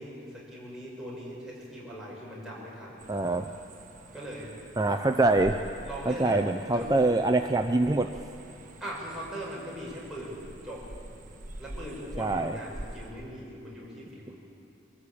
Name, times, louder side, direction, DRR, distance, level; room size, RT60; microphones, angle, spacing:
voice 1, 0.0-3.1 4.1-4.6 5.8-6.4 6.7-6.9 8.8-10.9 11.6-14.3, equal, ahead, -7 dB, 5.8 m, -40 dB
sound 1, 3.0-13.1, right 1 dB, 40° right, 1.5 m, -46 dB
voice 2, 3.1-3.5 4.8-5.6 6.1-8.1 12.2-12.6, right 2 dB, 20° right, 6 dB, 0.5 m, -24 dB
23.5 x 14.0 x 8.5 m, 2.8 s
head